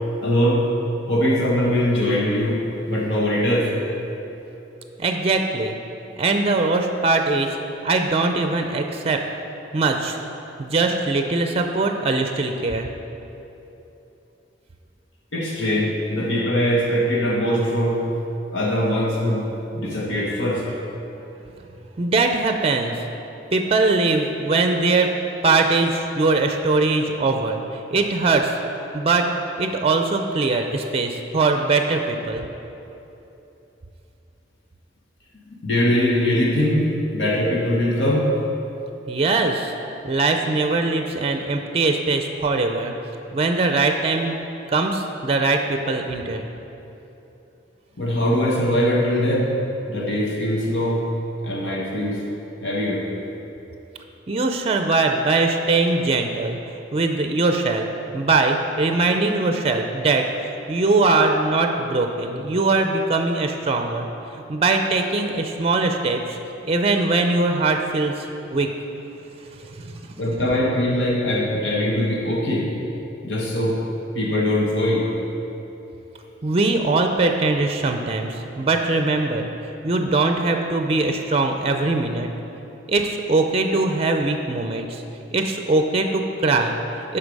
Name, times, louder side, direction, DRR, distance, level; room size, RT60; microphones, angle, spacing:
voice 1, 0.2-0.7 1.1-2.6 2.9-3.7 15.3-18.0 18.5-20.6 35.5-36.8 37.1-38.3 48.0-49.5 49.9-51.0 51.4-52.2 52.6-53.0 70.2-72.7 73.2-73.8 74.1-75.0, left 1 dB, 80° left, -3 dB, 1.3 m, -21 dB
voice 2, 5.0-5.8 6.2-7.6 7.8-9.2 9.7-10.2 10.6-12.9 22.0-23.0 23.5-25.1 25.4-27.6 27.9-28.5 28.9-29.3 29.6-32.4 39.1-39.7 40.0-42.9 43.3-44.4 44.7-46.4 54.3-56.6 56.9-57.9 58.1-60.3 60.7-64.1 64.5-66.4 66.6-68.3 68.5-68.7 69.7-70.2 76.4-79.5 79.8-82.3 82.9-85.0 85.3-87.2, right 3 dB, 35° right, 5 dB, 0.5 m, -21 dB
8.0 x 5.7 x 5.3 m, 3.0 s
head